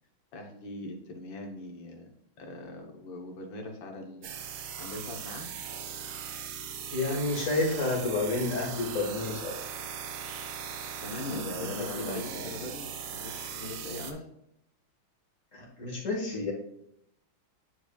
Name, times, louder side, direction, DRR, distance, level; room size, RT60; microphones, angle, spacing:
voice 1, 0.3-2.1 2.4-4.3 4.8-5.5 11.0-14.2, left 2 dB, 70° left, 2 dB, 1.8 m, -41 dB
sound 1, 4.2-14.1, right 7 dB, 80° right, 1.5 m, -39 dB
voice 2, 6.9-9.5 11.4-12.5 15.5-16.5, left 2 dB, 40° left, -2 dB, 1.8 m, -30 dB
9.7 x 4.7 x 2.3 m, 0.79 s
omnidirectional pair, 2.2 m